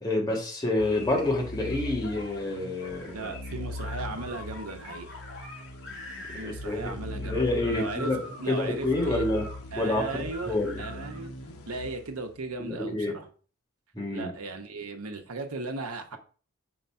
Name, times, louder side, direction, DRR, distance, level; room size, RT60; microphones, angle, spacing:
voice 1, 0.0-3.3 6.3-8.2 8.5-9.5 9.8-10.8 12.6-13.2 13.9-14.3, left 2 dB, 20° left, -1 dB, 1.5 m, -28 dB
sound 1, 0.7-11.3, left 2 dB, 55° left, 2.0 m, -45 dB
sound 2, 0.8-12.6, left 1 dB, 90° left, 0.9 m, -41 dB
voice 2, 3.1-5.1 6.4-8.1 8.4-9.3 9.7-11.4 11.7-13.3 14.1-16.2, right 3 dB, 90° right, 5 dB, 1.0 m, -37 dB
5.2 x 4.0 x 5.6 m, 0.41 s
head